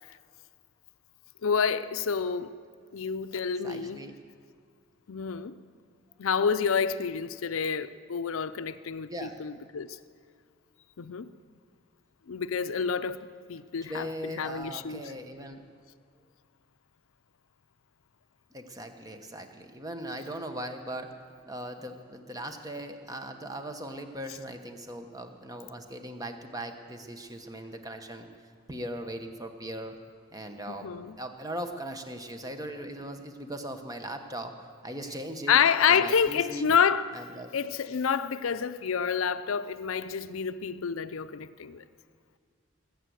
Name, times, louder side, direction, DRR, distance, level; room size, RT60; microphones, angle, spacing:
voice 1, 1.4-2.5 2.9-4.0 5.1-5.6 6.2-10.0 11.0-11.3 12.3-15.0 30.7-31.2 35.5-37.2 37.5-41.8, left 6 dB, 90° left, 0.5 m, -28 dB
voice 2, 3.6-4.2 9.1-9.4 13.8-15.6 18.5-21.1 21.4-28.3 28.7-30.0 30.3-30.9 31.2-34.5 34.8-35.6 35.9-36.7 37.1-37.6, right 1 dB, 20° right, 1.1 m, -39 dB
20.5 x 8.3 x 7.9 m
head